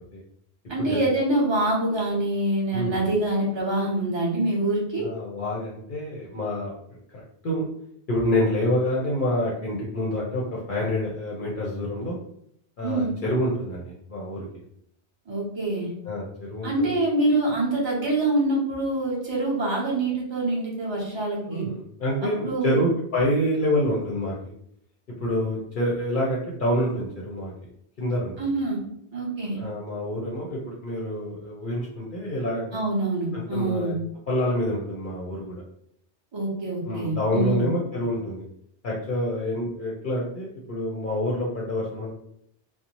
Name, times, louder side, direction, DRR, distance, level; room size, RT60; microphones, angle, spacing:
voice 1, 0.7-5.0 12.8-13.1 15.3-15.9 16.6-21.6 22.2-22.8 28.4-28.8 29.1-29.6 32.7-34.0 36.3-37.7, right 2 dB, 30° right, -4 dB, 0.7 m, -25 dB
voice 2, 5.0-6.7 7.1-7.6 8.1-12.2 12.8-14.5 16.0-16.9 21.5-24.5 25.2-27.5 28.0-28.3 29.5-32.8 33.3-33.9 34.3-35.6 36.8-38.4 38.8-42.1, left 1 dB, 55° left, -4 dB, 0.7 m, -27 dB
2.6 x 2.1 x 2.9 m, 0.71 s
omnidirectional pair, 1.2 m